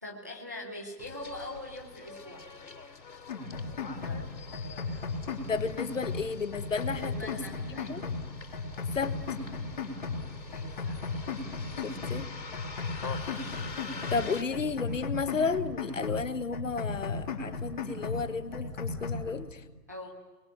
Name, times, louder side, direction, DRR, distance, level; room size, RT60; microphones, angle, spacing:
voice 1, 0.0-2.5 4.0-4.3 6.9-8.0 10.5-11.1 11.7-12.0 19.9-20.1, left 1 dB, 10° right, -2 dB, 0.9 m, -43 dB
Bus, 1.0-14.4, left 5 dB, 90° left, 3.4 m, -45 dB
sound 1, 3.3-4.3 4.5-6.3 6.5-8.3 8.5-10.3 10.5-12.3 12.5-14.3 14.5-16.3 16.5-18.3 18.5-19.3, left 4 dB, 30° left, 3.5 m, -35 dB
voice 2, 5.5-7.4 7.7-8.0 8.9-9.2 11.8-12.3 14.1-19.6, left 5 dB, 50° left, 12 dB, 1.3 m, -33 dB
29.5 x 22.0 x 9.2 m, 1.2 s
hypercardioid pair, 170°, 50 cm